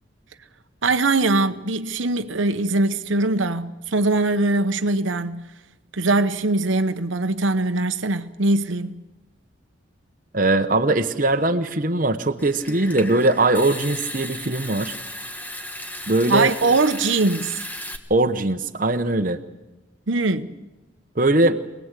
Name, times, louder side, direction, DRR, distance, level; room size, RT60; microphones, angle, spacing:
voice 1, 0.8-5.5 5.9-9.0 16.3-17.6 20.1-20.5, right 2 dB, 80° right, 1.0 m, -21 dB
voice 2, 10.3-14.9 16.1-16.5 18.1-19.4 21.2-21.6, right 2 dB, 45° right, 1.1 m, -20 dB
Water tap faucet / Sink (filling or washing) / Trickle dribble, 12.4-18.0, left 1 dB, 10° left, 1.5 m, -35 dB
25.5 x 19.0 x 8.3 m
head